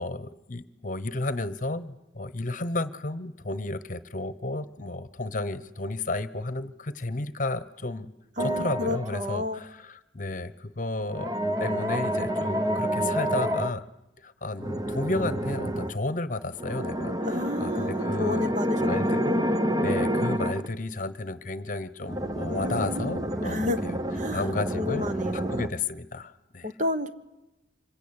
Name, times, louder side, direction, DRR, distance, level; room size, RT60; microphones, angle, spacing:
voice 1, 0.0-8.1 8.4-11.3 11.6-13.9 14.2-24.0 24.3-25.1 25.3-26.7, left 2 dB, 45° left, 14 dB, 1.0 m, -33 dB
sound 1, 8.4-9.3 11.1-13.7 14.6-15.9 16.6-20.7 22.0-25.7, equal, 20° right, 0.9 m, -28 dB
voice 2, 8.4-9.6 17.2-19.4 22.5-23.9 24.1-24.4 24.7-25.6 26.6-27.1, left 2 dB, 40° right, 9 dB, 1.3 m, -32 dB
26.0 x 22.5 x 8.9 m, 0.94 s
head